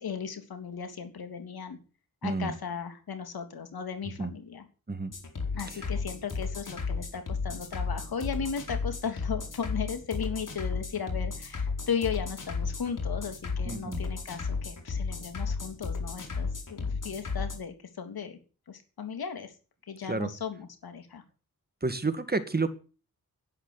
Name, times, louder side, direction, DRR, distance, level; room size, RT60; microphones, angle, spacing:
voice 1, 0.0-1.8 2.2-4.7 5.5-18.4 18.7-19.5 19.8-21.2, left 6 dB, 85° left, 7 dB, 3.2 m, -36 dB
voice 2, 2.2-2.5 4.2-4.3 4.9-5.2 13.7-14.0 20.1-20.3 21.8-22.8, right 3 dB, 25° right, 11 dB, 2.0 m, -30 dB
sound 1, 5.1-17.6, left 4 dB, 60° left, 4.9 m, -33 dB
11.0 x 10.0 x 9.9 m, 0.37 s
cardioid pair, 70°, 36 cm